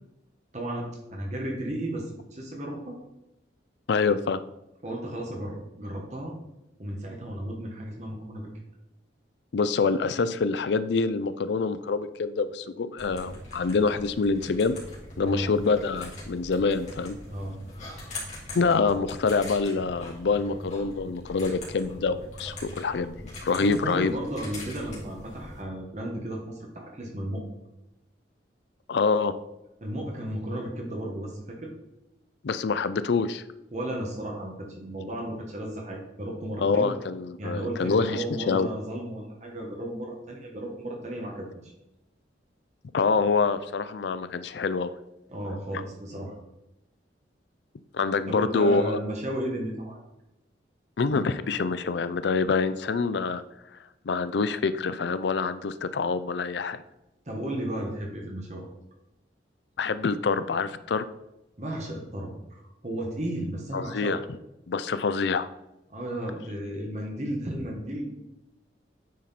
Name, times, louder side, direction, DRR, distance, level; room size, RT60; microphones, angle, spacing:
voice 1, 0.5-3.0 4.8-6.3 6.8-8.5 15.2-15.5 17.3-17.6 23.5-27.4 29.8-31.7 33.7-36.9 37.4-41.7 45.3-46.4 48.3-50.0 57.2-58.7 61.6-64.2 65.9-68.1, right 1 dB, 40° right, 0 dB, 1.2 m, -34 dB
voice 2, 3.9-4.4 9.5-14.8 15.2-17.2 18.5-23.1 23.4-24.1 28.9-29.3 32.4-33.4 36.6-38.7 42.9-44.9 47.9-49.0 51.0-53.4 54.1-56.8 59.8-61.0 63.7-64.2 64.7-65.5, left 4 dB, 65° left, 13 dB, 0.4 m, -26 dB
sound 1, 13.0-25.6, left 1 dB, 40° left, 2.6 m, -42 dB
9.3 x 4.3 x 4.1 m, 0.91 s
head